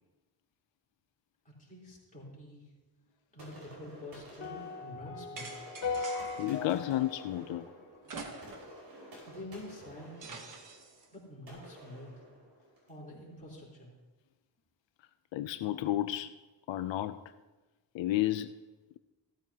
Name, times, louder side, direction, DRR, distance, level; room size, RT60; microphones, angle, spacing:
voice 1, 1.5-2.7 3.3-5.5 9.2-10.4 11.1-12.3 12.9-13.9, left 1 dB, 20° left, -6 dB, 3.5 m, -47 dB
sound 1, 3.4-13.0, right 1 dB, 80° right, 4.9 m, -52 dB
sound 2, 4.4-8.7, left 4 dB, 40° left, 2.5 m, -39 dB
sound 3, 5.4-6.6 8.0-8.8 9.1-9.2 10.2-11.1, right 4 dB, 45° right, 1.3 m, -45 dB
voice 2, 6.4-7.7 15.3-16.3 16.7-17.2 17.9-18.5, left 14 dB, 90° left, 11 dB, 0.5 m, -31 dB
14.5 x 13.5 x 2.8 m, 1.1 s
wide cardioid pair, 145°, 43 cm